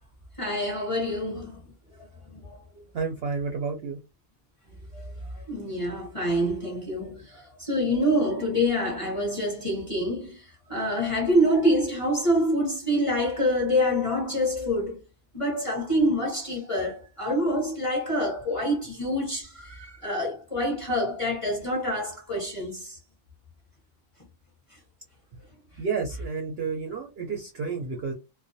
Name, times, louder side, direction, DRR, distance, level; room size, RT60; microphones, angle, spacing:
voice 1, 0.4-1.6 4.9-5.0 5.5-15.0 15.3-23.0, equal, 30° left, 0.6 m, -26 dB
voice 2, 2.9-4.0 25.8-28.1, right 5 dB, 65° right, 0.6 m, -30 dB
2.3 x 2.2 x 2.6 m
omnidirectional pair, 1.4 m